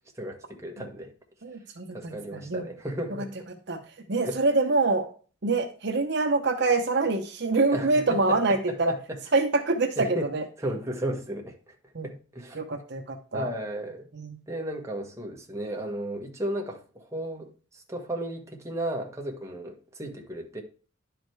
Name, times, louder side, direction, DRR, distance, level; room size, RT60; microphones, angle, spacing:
voice 1, 0.2-1.1 1.9-3.3 4.2-4.4 7.7-9.2 10.0-10.3 10.6-11.7 12.0-12.6 13.3-14.1 14.5-20.6, right 1 dB, 15° right, 1.5 m, -34 dB
voice 2, 1.4-2.6 3.7-3.8 4.1-5.1 5.4-8.9 9.3-10.4 11.9-12.1 12.6-13.5 14.2-14.4, right 3 dB, 55° right, 0.9 m, -25 dB
10.5 x 5.1 x 4.7 m
head